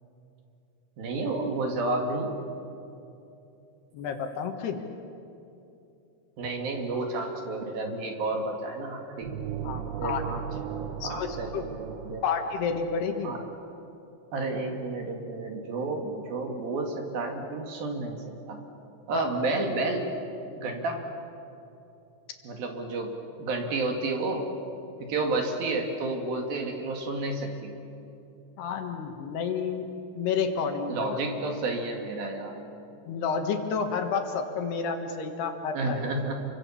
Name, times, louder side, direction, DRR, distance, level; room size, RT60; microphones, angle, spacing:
voice 1, 1.0-2.4 6.4-9.3 9.8-12.2 13.2-13.4 14.3-18.6 19.1-20.1 20.6-21.0 22.4-23.1 23.4-24.5 25.0-27.7 30.9-32.6 35.7-36.5, right 2 dB, 60° right, 3 dB, 3.6 m, -31 dB
voice 2, 3.9-4.8 9.6-10.2 11.0-11.7 12.2-13.3 19.1-19.3 28.6-29.9 30.2-31.2 33.1-36.1, left 6 dB, 70° left, 5 dB, 3.4 m, -30 dB
sound 1, 9.2-13.0, right 8 dB, 75° right, 3.2 m, -36 dB
28.5 x 24.5 x 7.2 m, 2.8 s
omnidirectional pair, 5.2 m